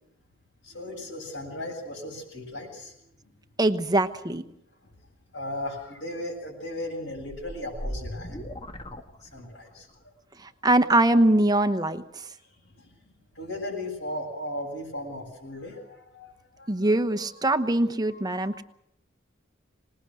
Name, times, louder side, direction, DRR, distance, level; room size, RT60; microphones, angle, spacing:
voice 1, 0.6-2.9 3.2-3.3 4.8-4.9 5.3-8.5 9.2-10.1 12.4-17.3 18.1-18.6, left 1 dB, 65° left, -3 dB, 7.9 m, -37 dB
voice 2, 3.6-4.4 10.6-12.0 16.7-18.6, right 1 dB, 20° right, 10 dB, 1.0 m, -22 dB
sound 1, 7.1-9.8, equal, 25° left, 1.5 m, -38 dB
26.0 x 20.0 x 6.4 m, 0.79 s
head